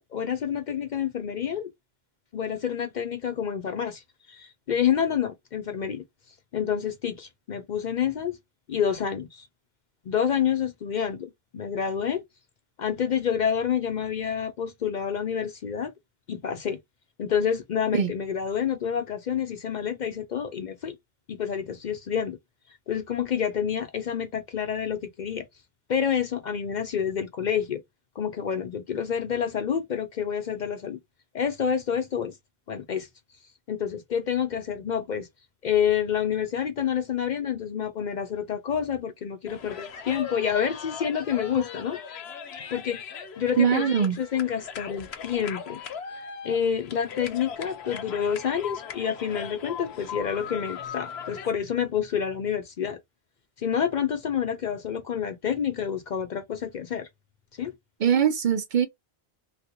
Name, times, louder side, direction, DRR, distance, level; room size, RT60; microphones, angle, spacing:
voice 1, 0.0-1.7 2.3-6.0 6.5-8.4 8.7-9.5 10.1-12.2 12.8-15.9 16.3-16.8 17.2-21.0 21.3-22.4 22.9-25.5 25.9-27.8 28.2-31.0 31.3-32.4 32.7-33.1 33.7-35.3 35.6-42.0 42.7-53.0 53.6-57.1 57.6-57.7, left 8 dB, 55° left, 0.6 m, -28 dB
sound 1, 39.5-51.5, left 7 dB, 80° left, 0.9 m, -38 dB
voice 2, 43.6-44.2 58.0-58.9, right 8 dB, 55° right, 0.6 m, -22 dB
3.2 x 2.5 x 2.8 m
omnidirectional pair, 1.0 m